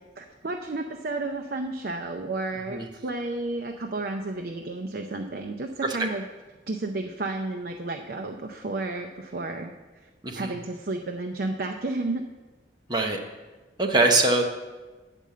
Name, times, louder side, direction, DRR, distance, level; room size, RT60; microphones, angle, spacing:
voice 1, 0.2-6.2 6.7-9.7 10.0-12.2, right 2 dB, 50° right, 3 dB, 0.5 m, -32 dB
voice 2, 13.8-14.4, right 2 dB, 20° right, 2 dB, 0.8 m, -22 dB
8.3 x 5.3 x 7.5 m, 1.2 s
head